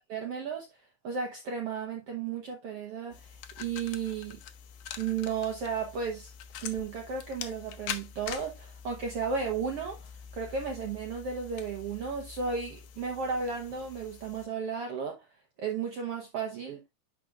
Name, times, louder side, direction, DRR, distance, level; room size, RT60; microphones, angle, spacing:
voice 1, 0.1-0.7 1.0-4.4 5.0-6.3 6.6-15.3 15.6-16.8, right 5 dB, 60° right, 1.7 m, -34 dB
sound 1, 3.1-14.5, left 8 dB, 70° left, 1.8 m, -45 dB
11.0 x 5.0 x 2.4 m
omnidirectional pair, 3.6 m